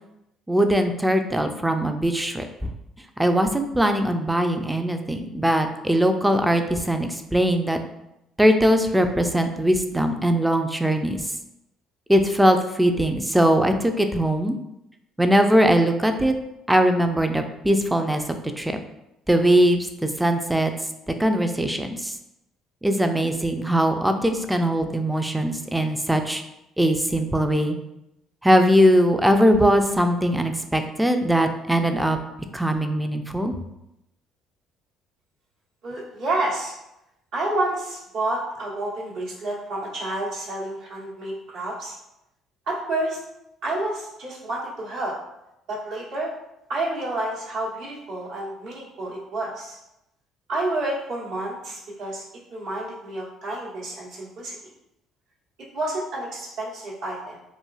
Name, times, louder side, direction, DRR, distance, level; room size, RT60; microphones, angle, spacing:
voice 1, 0.5-2.7 3.2-7.8 8.4-11.2 12.1-14.6 15.2-16.3 16.7-18.2 18.6-18.8 19.3-20.7 21.2-22.1 22.8-26.4 26.8-27.8 28.4-32.2 32.5-33.5, equal, 10° right, 6 dB, 0.3 m, -21 dB
voice 2, 35.8-36.7 37.3-41.9 42.7-43.2 43.6-45.1 45.7-46.3 46.7-49.8 50.5-52.2 52.5-54.6 55.7-57.4, right 2 dB, 70° right, -5 dB, 1.0 m, -29 dB
3.0 x 2.3 x 2.3 m, 0.86 s
hypercardioid pair, 60°, 0 cm